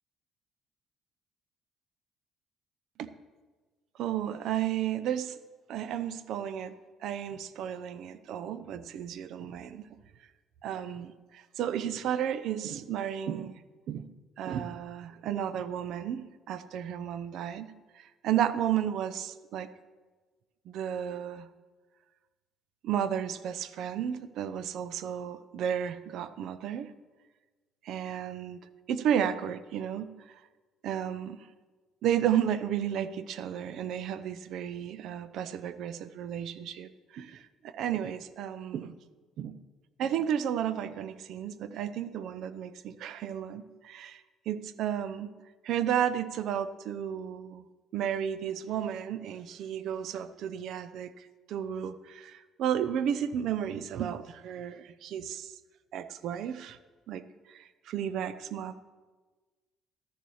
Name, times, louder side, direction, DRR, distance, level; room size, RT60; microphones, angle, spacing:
voice 1, 4.0-5.4 5.7-6.7 7.0-9.9 10.6-13.5 13.9-14.1 14.4-19.7 20.7-21.5 22.8-26.9 27.9-28.6 28.9-30.1 30.8-31.4 32.0-38.9 39.4-39.6 40.0-44.2 44.5-45.3 45.6-47.6 47.9-51.1 51.5-55.5 55.9-56.8 57.1-57.2 57.5-58.8, right 9 dB, 70° right, 13 dB, 0.7 m, -33 dB
13.0 x 6.9 x 6.4 m, 1.3 s
cardioid pair, 85°, 0 cm